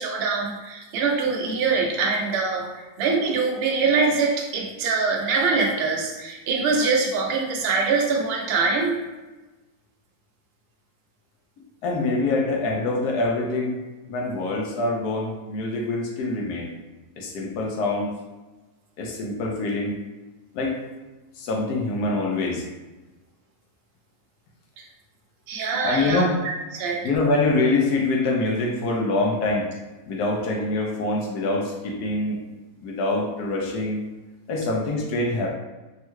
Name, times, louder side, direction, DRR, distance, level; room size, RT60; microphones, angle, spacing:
voice 1, 0.0-9.0 24.8-24.9 25.5-26.3 26.7-27.0, right 4 dB, 85° right, 0 dB, 0.5 m, -23 dB
voice 2, 11.8-13.8 14.1-16.7 17.2-18.1 19.0-20.0 20.5-20.8 21.4-22.6 25.8-26.3 27.0-29.7 30.1-32.4 32.8-34.0 34.5-35.5, left 2 dB, 75° left, 0 dB, 1.1 m, -25 dB
3.5 x 2.1 x 3.0 m, 1.2 s
omnidirectional pair, 1.7 m